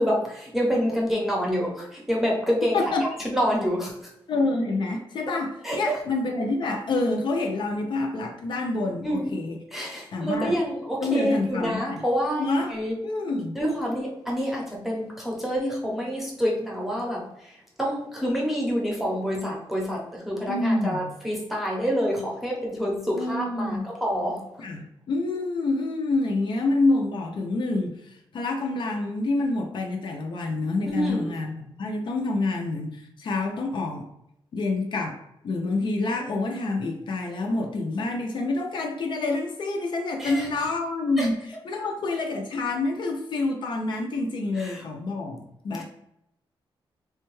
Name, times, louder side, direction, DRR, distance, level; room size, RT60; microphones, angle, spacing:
voice 1, 0.0-2.8 3.3-3.9 5.6-6.0 9.0-9.3 9.7-12.9 13.5-17.2 17.8-24.4 30.9-31.2 40.2-40.5 41.2-41.3 44.6-44.8, equal, ahead, -3 dB, 0.7 m, -27 dB
voice 2, 4.3-9.6 10.1-10.6 11.0-12.0 12.4-13.6 20.5-21.1 23.1-23.9 24.6-34.1 34.5-35.2 35.4-45.8, left 2 dB, 55° left, 2 dB, 0.4 m, -27 dB
3.4 x 2.2 x 3.1 m, 0.79 s
wide cardioid pair, 175°, 9 cm